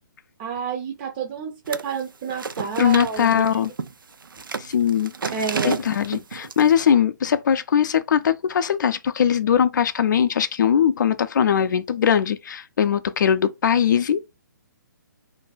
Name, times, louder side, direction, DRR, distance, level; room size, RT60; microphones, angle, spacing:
voice 1, 0.4-3.4 5.3-5.8, right 6 dB, 30° right, 0.5 m, -29 dB
sound 1, 1.7-2.0 2.3-6.6, right 5 dB, 85° right, 0.4 m, -31 dB
voice 2, 2.8-3.7 4.6-5.1 5.6-14.2, left 8 dB, 65° left, 0.4 m, -20 dB
2.6 x 2.2 x 3.9 m
figure-of-eight pair, 140°, 11 cm